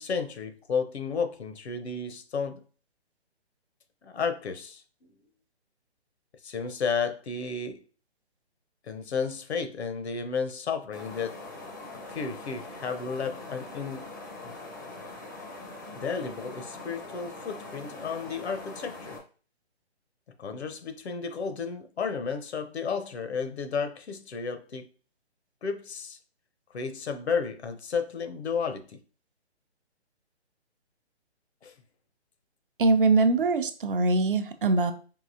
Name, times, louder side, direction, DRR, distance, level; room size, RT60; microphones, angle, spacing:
voice 1, 0.0-2.6 4.0-4.8 6.4-7.8 8.9-11.4 12.1-14.1 14.4-14.5 15.9-19.2 20.4-24.9 25.6-26.2 26.7-29.0 31.6-31.7, left 5 dB, 70° left, 0.8 m, -32 dB
sound 1, 10.9-19.2, left 2 dB, 20° left, 0.5 m, -42 dB
voice 2, 32.8-34.9, right 3 dB, 50° right, 0.6 m, -22 dB
4.7 x 2.8 x 2.7 m
hypercardioid pair, 160°, 34 cm